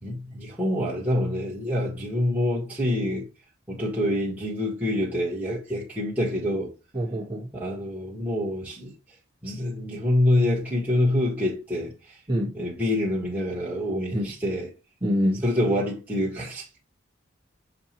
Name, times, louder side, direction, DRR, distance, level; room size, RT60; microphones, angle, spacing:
voice 1, 0.0-3.2 3.7-6.7 7.5-8.9 9.4-11.9 12.5-14.7 15.4-16.8, left 1 dB, 10° right, 1.6 m, -26 dB
voice 2, 6.9-7.5 12.3-12.5 14.1-14.3 15.0-15.4, equal, 25° right, 1.5 m, -25 dB
6.7 x 2.7 x 2.9 m
head